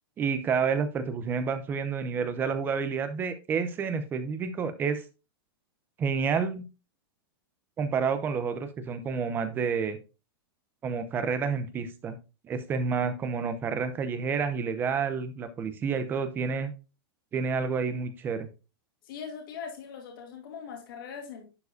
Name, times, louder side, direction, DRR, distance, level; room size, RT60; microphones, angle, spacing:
voice 1, 0.2-5.0 6.0-6.6 7.8-10.0 10.8-12.2 12.4-16.7 17.3-18.5, right 5 dB, 15° right, 0.7 m, -29 dB
voice 2, 19.0-21.5, left 6 dB, 60° left, 2.4 m, -41 dB
11.0 x 4.6 x 2.7 m
supercardioid pair, 165°, 13 cm